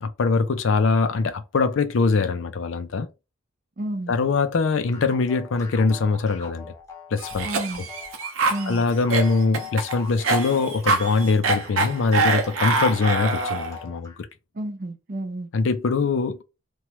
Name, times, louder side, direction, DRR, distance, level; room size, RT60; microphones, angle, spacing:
voice 1, 0.0-3.1 4.1-6.7 7.1-7.5 7.8-7.9 8.7-14.3 15.5-16.4, left 4 dB, 65° left, 0.4 m, -23 dB
voice 2, 3.8-4.1 7.5-7.8 8.5-8.8 14.6-15.5, right 1 dB, 45° right, 0.5 m, -31 dB
sound 1, 4.9-14.2, left 5 dB, 15° left, 0.5 m, -42 dB
Cough, 7.2-13.8, right 3 dB, 85° right, 0.7 m, -24 dB
3.0 x 2.2 x 2.9 m
head